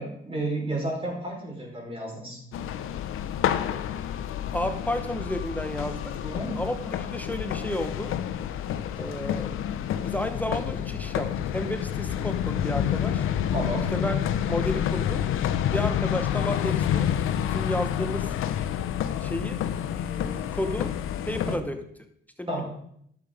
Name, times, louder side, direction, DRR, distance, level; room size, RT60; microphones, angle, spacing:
voice 1, 0.0-2.4 6.2-6.5 13.5-13.8 21.5-21.6 22.5-22.6, right 1 dB, 25° right, -1 dB, 4.7 m, -31 dB
sound 1, 2.5-21.6, left 10 dB, 80° left, 0.8 m, -28 dB
voice 2, 4.5-6.1 6.6-8.1 9.0-9.5 10.0-13.3 13.9-14.1 14.4-15.2 15.7-17.1 17.5-18.3 19.2-19.7 20.0-20.9 21.2-21.8 22.4-22.6, left 1 dB, 5° left, 7 dB, 1.1 m, -32 dB
11.5 x 7.2 x 5.1 m, 0.69 s
cardioid pair, 90°, 21 cm